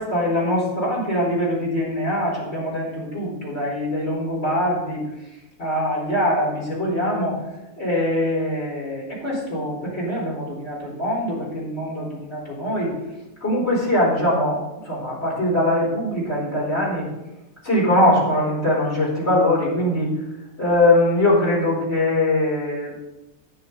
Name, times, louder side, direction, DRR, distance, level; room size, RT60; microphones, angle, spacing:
voice 1, 0.0-5.0 5.6-7.4 7.8-12.9 13.4-17.1 17.6-20.1 20.6-23.0, left 1 dB, 35° left, -5 dB, 4.8 m, -22 dB
16.0 x 6.6 x 4.1 m, 0.96 s
omnidirectional pair, 2.0 m